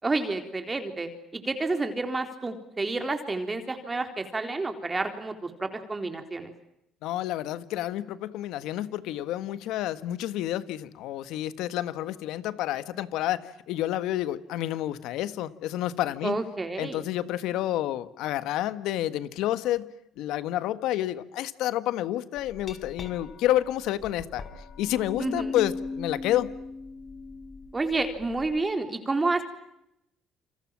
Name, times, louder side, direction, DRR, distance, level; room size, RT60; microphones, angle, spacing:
voice 1, 0.0-6.5 16.2-17.0 25.2-25.6 27.7-29.4, right 3 dB, 20° right, 6 dB, 3.8 m, -30 dB
voice 2, 7.0-13.4 13.7-16.4 16.8-19.9 20.2-24.4 24.8-26.5, left 13 dB, 80° left, 13 dB, 1.6 m, -29 dB
Glass, 22.4-28.5, left 4 dB, 45° left, 5.9 m, -38 dB
29.0 x 26.5 x 7.5 m, 0.82 s
cardioid pair, 90°, 0 cm